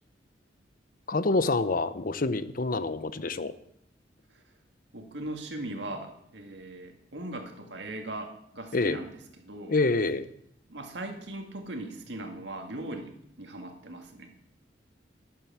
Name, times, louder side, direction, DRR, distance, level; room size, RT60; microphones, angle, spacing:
voice 1, 1.1-3.5 8.7-9.0 9.7-10.3, left 3 dB, 50° left, 13 dB, 0.8 m, -27 dB
voice 2, 4.9-9.2 9.4-9.8 10.7-14.3, right 1 dB, 70° right, 4 dB, 2.1 m, -39 dB
11.5 x 9.2 x 7.3 m, 0.73 s
head